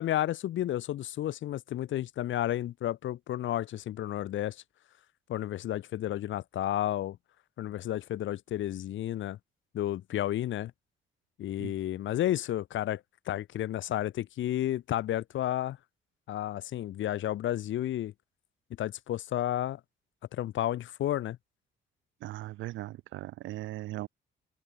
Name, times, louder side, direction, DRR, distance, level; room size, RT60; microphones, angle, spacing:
voice 1, 0.0-4.6 5.3-7.2 7.6-9.4 9.7-10.7 11.4-15.8 16.3-18.1 18.8-19.8 20.3-21.4, left 12 dB, 75° left, 1.5 m, -32 dB
voice 2, 22.2-24.1, right 16 dB, 75° right, 0.4 m, -38 dB
open air
cardioid pair, 90°, 20 cm